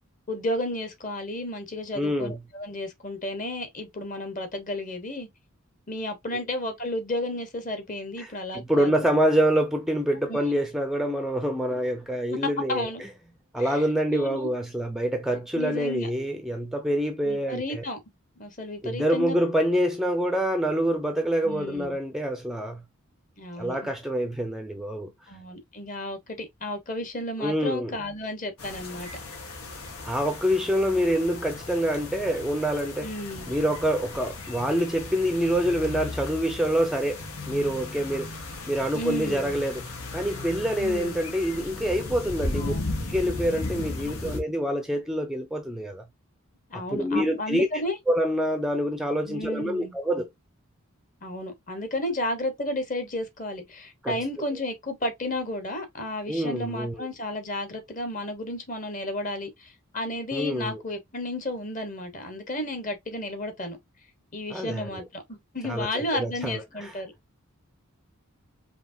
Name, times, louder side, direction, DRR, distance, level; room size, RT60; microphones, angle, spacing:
voice 1, 0.3-5.3 5.9-8.9 10.3-10.4 12.7-13.0 13.6-13.8 14.1-14.5 15.5-16.1 17.2-18.0 18.4-19.4 21.4-22.0 23.4-23.8 25.3-29.1 33.0-33.5 38.9-39.5 40.8-41.2 42.6-42.9 46.7-48.0 49.2-49.9 51.2-63.8 64.3-67.1, left 1 dB, 35° left, 1.2 m, -33 dB
voice 2, 1.9-2.4 8.2-12.9 13.5-17.8 18.8-22.8 23.6-25.1 27.4-27.9 30.0-33.1 33.5-38.4 38.7-39.9 40.1-42.7 43.1-46.0 46.7-47.7 48.1-50.3 54.0-54.2 56.3-57.1 60.3-60.8 64.5-65.0 65.6-66.9, equal, ahead, 0.5 m, -26 dB
sound 1, 28.6-44.4, left 2 dB, 90° left, 1.4 m, -36 dB
5.0 x 2.9 x 2.7 m
head